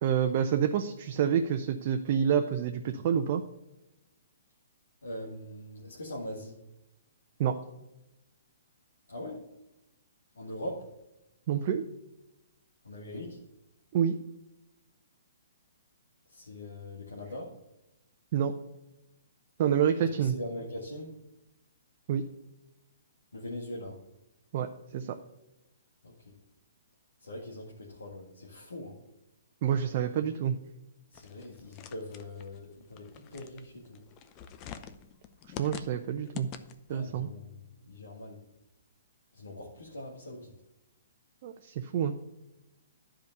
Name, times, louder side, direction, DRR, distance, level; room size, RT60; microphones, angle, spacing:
voice 1, 0.0-3.4 7.4-7.5 11.5-11.8 13.9-14.2 18.3-18.5 19.6-20.4 22.1-22.2 24.5-24.7 24.9-25.1 29.6-30.6 35.6-36.5 36.9-37.3 41.4-42.1, right 8 dB, 45° right, 5 dB, 0.7 m, -27 dB
voice 2, 5.0-6.6 9.1-9.4 10.4-10.8 12.8-13.4 16.3-17.6 20.0-21.1 23.3-24.0 26.0-26.3 27.2-29.0 31.1-34.1 36.9-38.4 39.3-40.5, left 1 dB, 85° left, -3 dB, 1.9 m, -42 dB
sound 1, 31.1-37.0, left 9 dB, 30° left, 0.7 m, -46 dB
10.5 x 5.1 x 6.7 m, 0.93 s
hypercardioid pair, 130°, 0 cm